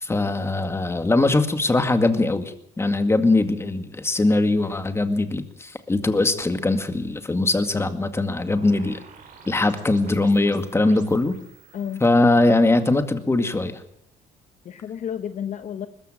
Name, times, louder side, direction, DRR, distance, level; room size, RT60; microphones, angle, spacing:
voice 1, 0.0-9.0 9.5-11.4 12.0-13.8, left 2 dB, 15° left, 9 dB, 2.1 m, -21 dB
sound 1, 8.5-13.1, right 6 dB, 50° right, 5.3 m, -48 dB
voice 2, 14.6-15.9, left 8 dB, 45° left, 11 dB, 1.0 m, -31 dB
20.5 x 14.5 x 8.9 m, 0.72 s
cardioid pair, 110°, 17 cm